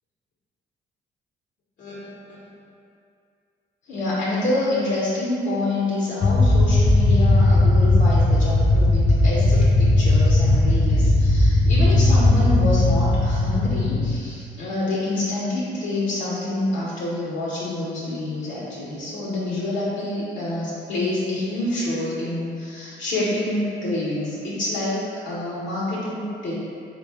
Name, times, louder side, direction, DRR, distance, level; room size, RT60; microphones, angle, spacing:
voice 1, 3.9-26.5, left 2 dB, 75° left, -8 dB, 1.1 m, -27 dB
sound 1, 6.2-14.2, left 2 dB, 20° left, 0.5 m, -17 dB
4.1 x 2.5 x 3.4 m, 2.4 s
cardioid pair, 90°, 20 cm